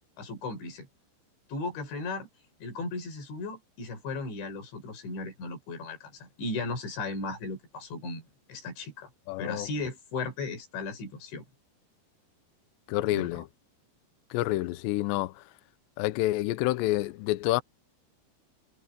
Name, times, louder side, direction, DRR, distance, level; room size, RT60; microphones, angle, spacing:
voice 1, 0.2-0.9 1.5-2.3 2.6-9.1 9.4-11.5 13.1-13.4, left 3 dB, 60° left, 7.6 m, -36 dB
voice 2, 9.3-9.7 12.9-13.4 14.3-15.3 16.0-17.6, left 17 dB, 85° left, 2.5 m, -28 dB
omnidirectional pair, 6.0 m